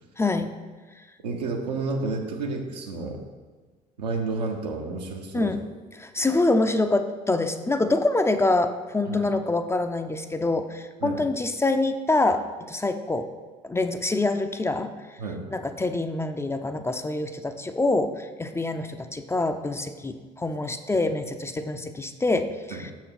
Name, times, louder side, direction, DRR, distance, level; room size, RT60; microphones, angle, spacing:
voice 1, 0.2-0.5 5.3-5.6 6.0-13.3 13.6-14.9 15.5-22.9, left 2 dB, 10° left, 7 dB, 0.5 m, -25 dB
voice 2, 1.2-3.2 4.0-5.5 9.1-9.3 11.0-11.2 15.2-15.5 22.7-22.8, right 3 dB, 75° right, 1 dB, 0.9 m, -30 dB
6.8 x 4.5 x 5.6 m, 1.4 s
figure-of-eight pair, 55°, 21 cm